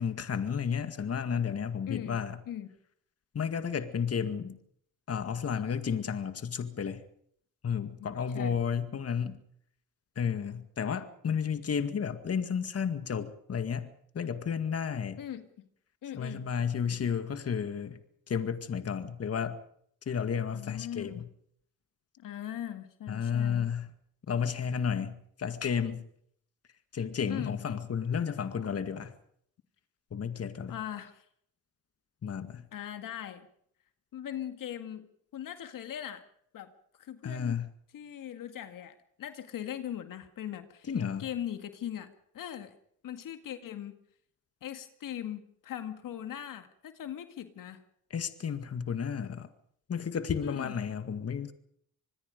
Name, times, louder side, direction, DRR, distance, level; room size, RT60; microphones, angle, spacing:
voice 1, 0.0-2.4 3.3-4.6 5.1-7.0 7.6-9.4 10.2-13.9 14.1-15.2 16.2-18.0 18.3-19.6 20.1-21.1 23.1-23.9 24.3-26.0 26.9-29.1 30.1-30.8 32.2-32.6 37.2-37.7 40.9-41.2 48.1-49.5 49.9-51.5, left 7 dB, 45° left, 2.0 m, -32 dB
voice 2, 1.9-2.2 2.5-2.7 8.0-8.6 15.2-15.5 16.0-16.5 20.5-21.3 22.2-23.7 27.3-27.6 30.7-31.3 32.7-33.5 34.1-35.1 35.3-36.2 36.5-36.7 37.0-37.6 37.9-42.7 43.0-43.9 44.6-47.8 50.4-50.8, left 10 dB, 65° left, 2.1 m, -40 dB
26.0 x 20.5 x 5.3 m
cardioid pair, 75°, 35 cm